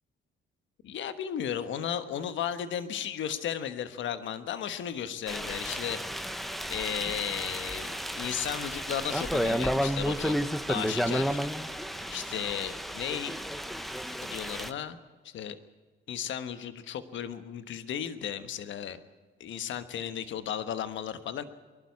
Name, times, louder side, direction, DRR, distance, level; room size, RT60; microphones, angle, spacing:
voice 1, 0.8-6.4 6.7-11.4 12.1-13.4 14.2-15.0 15.2-15.6 16.1-19.0 19.4-21.4, left 9 dB, 70° left, 11 dB, 1.3 m, -35 dB
sound 1, 5.3-14.7, equal, ahead, 1.0 m, -32 dB
22.5 x 12.0 x 9.6 m, 1.4 s
cardioid pair, 90°, 20 cm